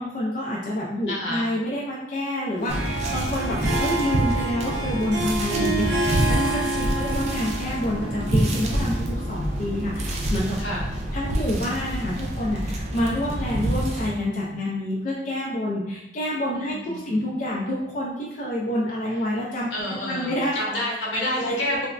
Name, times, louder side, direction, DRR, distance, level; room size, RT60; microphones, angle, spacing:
voice 1, 0.0-6.5 6.7-9.0 9.3-9.9 10.3-10.6 11.1-12.6 12.9-20.5 21.3-21.6, left 1 dB, 40° left, -4 dB, 0.3 m, -28 dB
voice 2, 1.1-1.4 6.7-7.1 10.6-10.8 16.5-17.2 19.7-21.9, left 1 dB, 75° left, -4 dB, 0.9 m, -30 dB
Harp, 2.5-10.8, right 2 dB, 85° right, 0.6 m, -30 dB
sound 1, 2.7-14.1, right 1 dB, 35° right, 0.3 m, -27 dB
3.3 x 2.0 x 2.4 m, 0.88 s
head